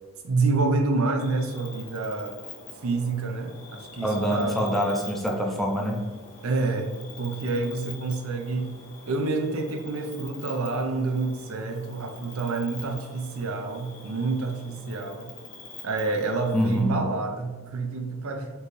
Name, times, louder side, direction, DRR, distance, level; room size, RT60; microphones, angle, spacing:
voice 1, 0.2-2.4 2.8-4.6 6.4-6.9 7.2-8.7 9.1-15.3 15.8-18.5, right 3 dB, 75° right, 5 dB, 0.5 m, -28 dB
Cricket, 1.2-16.8, left 4 dB, 65° left, 1.3 m, -46 dB
voice 2, 4.0-6.0 16.5-17.0, equal, ahead, 0 dB, 0.4 m, -25 dB
4.4 x 2.7 x 3.2 m, 1.3 s
head